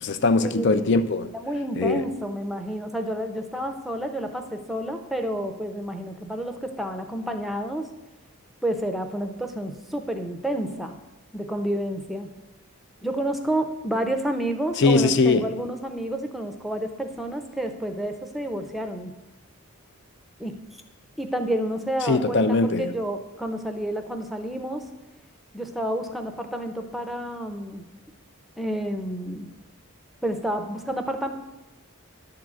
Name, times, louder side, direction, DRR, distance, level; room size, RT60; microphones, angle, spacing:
voice 1, 0.0-1.3 1.8-2.0 14.8-15.5 22.1-22.9, left 3 dB, 55° left, 0.5 m, -21 dB
voice 2, 1.3-7.9 8.6-11.0 11.3-12.3 13.0-19.1 20.4-20.5 21.2-24.8 25.5-27.9 28.6-29.5 30.2-31.3, right 1 dB, ahead, 0.6 m, -29 dB
10.5 x 3.7 x 7.4 m
head